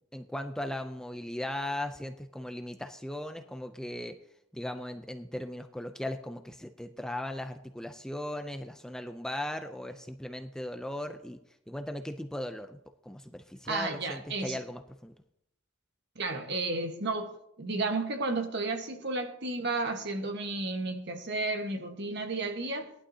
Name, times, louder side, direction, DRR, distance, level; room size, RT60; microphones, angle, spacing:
voice 1, 0.1-4.1 4.5-11.4 11.7-15.1, left 1 dB, 5° left, 0.4 m, -38 dB
voice 2, 13.6-14.6 16.1-22.9, right 3 dB, 55° right, 1.4 m, -32 dB
18.0 x 11.5 x 2.8 m
head